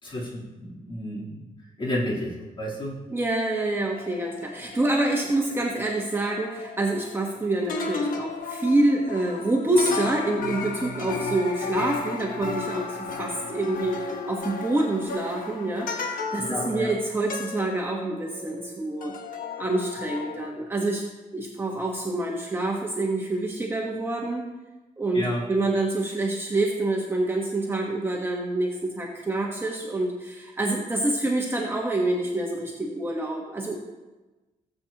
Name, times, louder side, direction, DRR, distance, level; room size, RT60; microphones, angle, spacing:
voice 1, 0.0-1.4 1.8-2.9 16.4-16.9 25.1-25.5, equal, 35° left, -6 dB, 3.5 m, -31 dB
voice 2, 3.1-19.1 19.6-21.0 21.3-24.4 25.0-33.7, right 2 dB, 15° right, -2 dB, 1.2 m, -27 dB
sound 1, 3.8-7.4 7.7-18.7 19.0-20.5, left 4 dB, 75° left, 1.2 m, -34 dB
18.0 x 7.9 x 2.9 m, 1.2 s
wide cardioid pair, 145°, 14 cm